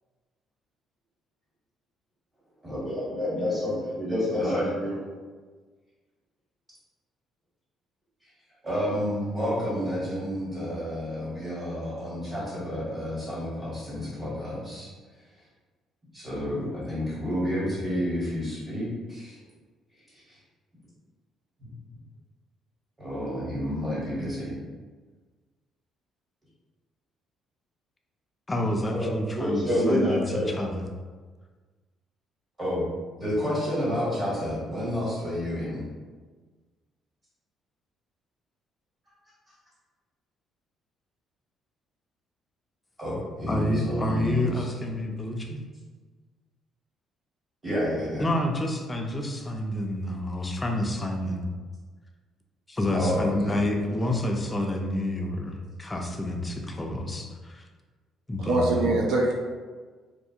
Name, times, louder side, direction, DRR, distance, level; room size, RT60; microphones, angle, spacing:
voice 1, 2.6-5.0 8.6-14.9 16.1-19.4 21.6-21.7 23.0-24.5 28.9-30.4 32.6-32.8 33.2-35.8 43.0-44.7 47.6-48.2 52.9-53.3 53.9-54.1 58.7-58.8, equal, 25° right, -10 dB, 1.2 m, -29 dB
voice 2, 28.5-30.8 43.5-45.6 48.2-51.5 52.7-57.6 58.3-58.9, left 1 dB, 15° left, 2 dB, 0.3 m, -29 dB
voice 3, 58.4-59.3, right 2 dB, 80° right, 1 dB, 0.4 m, -23 dB
2.4 x 2.3 x 2.7 m, 1.4 s
cardioid pair, 130°, 0 cm